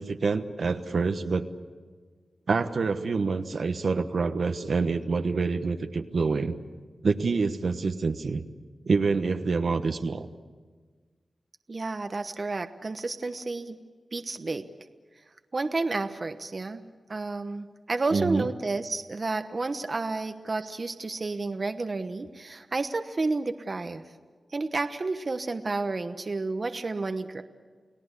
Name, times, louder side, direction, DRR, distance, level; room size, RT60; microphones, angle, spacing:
voice 1, 0.0-1.5 2.5-6.5 7.0-8.4 8.9-10.3 18.1-18.5, right 4 dB, 70° right, 8 dB, 1.2 m, -26 dB
voice 2, 11.7-13.8 14.1-14.7 15.5-16.8 17.1-24.0 24.5-27.4, right 3 dB, 45° right, 8 dB, 1.1 m, -31 dB
29.5 x 18.5 x 8.3 m, 1.5 s
wide cardioid pair, 80°, 0 cm